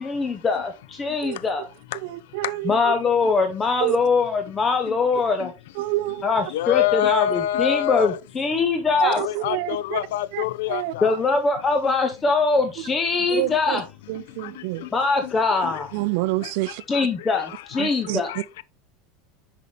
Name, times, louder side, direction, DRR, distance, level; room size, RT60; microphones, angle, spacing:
voice 1, 0.0-1.7 2.6-5.5 6.2-9.2 11.0-13.8 14.9-15.9 16.9-18.3, left 4 dB, 20° left, 0.7 m, -22 dB
voice 2, 1.2-1.7 2.0-2.9 3.8-4.0 5.7-6.5 9.0-10.0 10.3-10.9 12.8-12.9 13.3-13.8 14.1-14.9 15.9-16.8 17.8-18.6, right 17 dB, 65° right, 0.4 m, -28 dB
voice 3, 6.5-8.1 9.2-10.8, left 12 dB, 85° left, 0.5 m, -24 dB
6.2 x 5.5 x 3.2 m
supercardioid pair, 155°, 0 cm